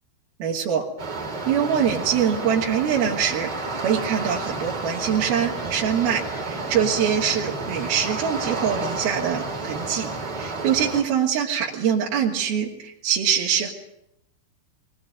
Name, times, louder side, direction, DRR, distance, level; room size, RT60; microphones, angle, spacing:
voice 1, 0.4-0.9 1.5-10.1 10.4-13.7, right 8 dB, 60° right, -4 dB, 4.2 m, -24 dB
sound 1, 1.0-11.0, right 3 dB, 25° right, 3.7 m, -31 dB
23.5 x 19.5 x 9.1 m, 0.81 s
omnidirectional pair, 5.1 m